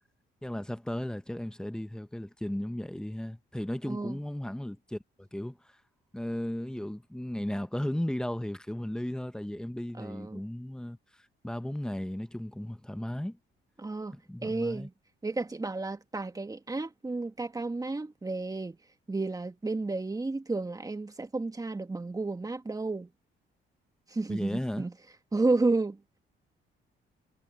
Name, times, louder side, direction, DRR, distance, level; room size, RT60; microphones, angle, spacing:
voice 1, 0.4-5.6 6.1-11.0 11.4-13.4 14.1-14.9 24.3-24.9, left 1 dB, 5° left, 1.2 m, -35 dB
voice 2, 3.9-4.2 10.0-10.4 13.8-14.9 15.2-18.8 19.1-23.1 24.1-24.9 25.3-26.0, right 3 dB, 20° right, 1.9 m, -32 dB
cardioid pair, 90°, 20 cm